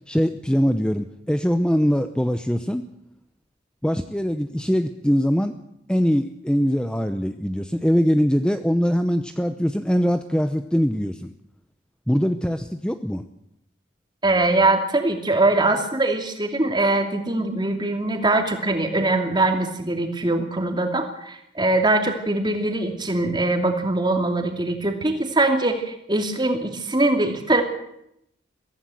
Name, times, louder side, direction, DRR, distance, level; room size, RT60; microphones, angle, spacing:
voice 1, 0.1-2.9 3.8-5.5 5.9-11.3 12.1-13.2, equal, 5° left, 8 dB, 0.8 m, -22 dB
voice 2, 14.2-27.6, right 2 dB, 25° right, 5 dB, 2.6 m, -22 dB
23.0 x 16.0 x 7.7 m, 0.79 s
head